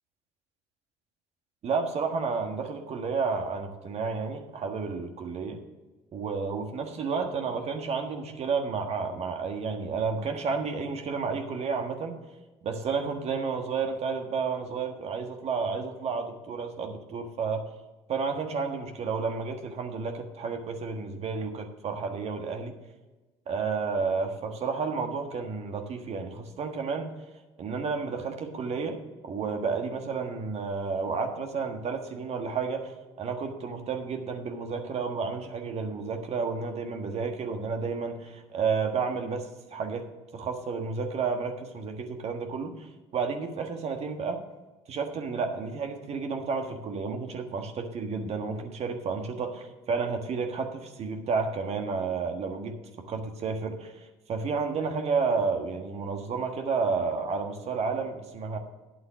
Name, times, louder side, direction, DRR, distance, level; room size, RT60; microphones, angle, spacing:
voice 1, 1.6-5.6 6.1-12.2 12.6-17.7 18.1-22.7 23.5-27.1 27.6-29.0 29.2-40.1 40.3-42.9 43.1-44.4 44.9-52.8 53.1-58.6, right 5 dB, 50° right, 4 dB, 1.4 m, -31 dB
9.1 x 8.0 x 6.2 m, 1.2 s
hypercardioid pair, 70°, 14 cm